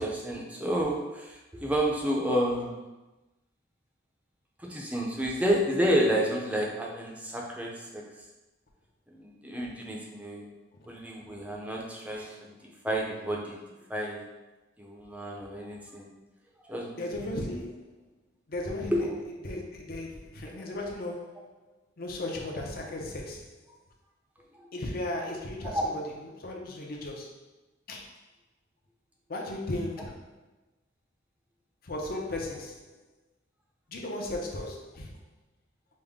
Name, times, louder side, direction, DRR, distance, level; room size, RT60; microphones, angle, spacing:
voice 1, 0.0-2.9 4.6-8.0 9.1-10.5 10.9-13.6 13.9-14.2 14.8-16.1 16.6-17.0 18.9-19.1 20.4-20.5 24.5-24.7 25.7-25.9, equal, 5° right, -2 dB, 0.5 m, -30 dB
voice 2, 17.0-17.9 18.5-18.9 19.4-21.5 22.0-23.5 24.7-25.9 26.3-27.4 27.9-28.1 29.3-30.3 31.8-32.9 33.9-35.1, left 1 dB, 50° left, 1 dB, 0.6 m, -36 dB
5.2 x 2.1 x 3.5 m, 1.1 s
head